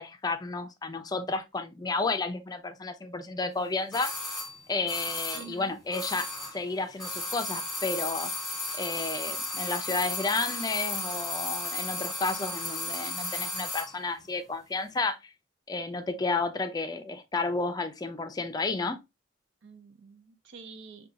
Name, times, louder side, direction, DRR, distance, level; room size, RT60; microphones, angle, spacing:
voice 1, 0.0-4.1 4.7-8.3 8.8-15.3 15.7-19.0, left 3 dB, 20° left, 0.4 m, -32 dB
sound 1, 3.9-6.7 6.9-14.0 14.2-14.3, left 2 dB, ahead, 1.4 m, -34 dB
voice 2, 5.3-5.8 19.6-21.1, right 4 dB, 75° right, 0.5 m, -47 dB
4.9 x 2.3 x 2.7 m
head